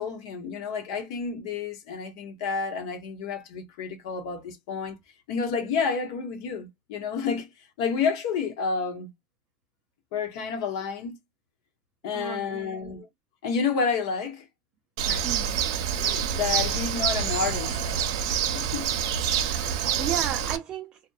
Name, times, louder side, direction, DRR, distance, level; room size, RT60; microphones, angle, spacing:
voice 1, 0.0-5.0 5.3-7.5 7.8-9.1 10.1-11.2 12.0-13.1 13.4-14.4 15.1-15.4 16.0-17.8 18.5-18.9, left 5 dB, 85° left, 0.8 m, -30 dB
voice 2, 12.1-12.9 15.2-15.6 19.4-21.0, right 10 dB, 35° right, 0.3 m, -35 dB
Bird, 15.0-20.6, right 8 dB, 90° right, 0.6 m, -27 dB
2.8 x 2.1 x 2.2 m
cardioid pair, 150°, 3 cm